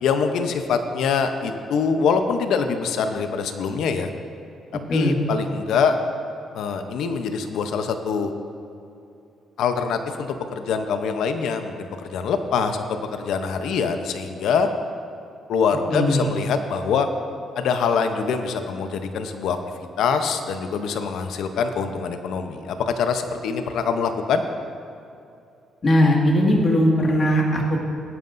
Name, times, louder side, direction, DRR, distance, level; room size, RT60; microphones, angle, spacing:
voice 1, 0.0-4.1 4.9-6.0 6.5-8.3 9.6-14.7 15.5-17.1 17.6-19.6 20.0-24.4, left 5 dB, 80° left, 7 dB, 0.8 m, -24 dB
voice 2, 15.9-16.3 25.8-27.8, equal, 40° left, -1 dB, 1.9 m, -19 dB
19.0 x 9.4 x 2.6 m, 2.6 s
cardioid pair, 90°, 0 cm